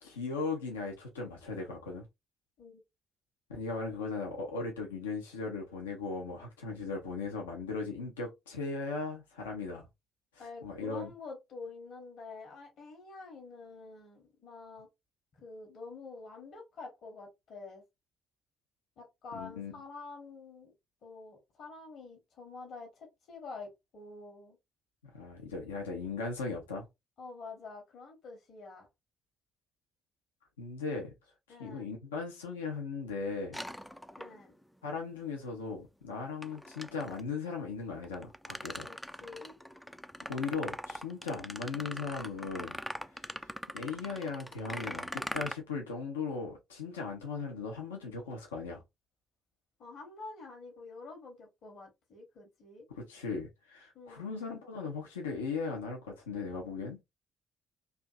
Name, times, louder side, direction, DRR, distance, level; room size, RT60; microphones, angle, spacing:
voice 1, 0.0-2.1 3.5-9.9 10.4-11.1 19.3-19.7 25.1-26.9 30.6-31.1 31.6-33.6 34.8-38.9 40.3-42.8 43.2-43.4 43.7-48.8 53.0-57.0, left 4 dB, 75° left, 0.7 m, -38 dB
voice 2, 10.4-14.9 15.4-17.8 19.0-20.7 21.0-24.6 27.2-28.9 31.5-31.9 34.2-34.5 38.9-39.6 49.8-52.9 53.9-54.3, left 3 dB, 55° left, 1.1 m, -47 dB
sound 1, 33.5-34.6 36.4-37.3 38.0-45.5, equal, ahead, 0.4 m, -42 dB
3.3 x 2.6 x 2.3 m
figure-of-eight pair, 40°, 0 cm